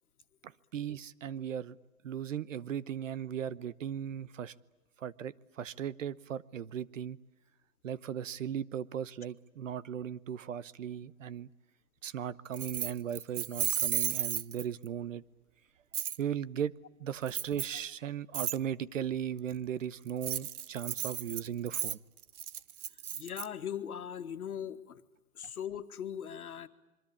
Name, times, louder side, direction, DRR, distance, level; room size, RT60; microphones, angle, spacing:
voice 1, 0.4-1.8 2.0-4.5 5.0-7.2 7.8-11.5 12.0-15.2 16.2-16.7 17.0-22.0, right 9 dB, 60° right, 1.0 m, -37 dB
Keys jangling, 12.5-14.9 15.9-16.2 17.3-17.8 18.3-18.6 20.1-23.5, right 10 dB, 85° right, 1.0 m, -34 dB
voice 2, 23.2-25.0 25.3-26.7, left 9 dB, 80° left, 2.0 m, -39 dB
27.0 x 23.5 x 8.6 m
hypercardioid pair, 170°, 43 cm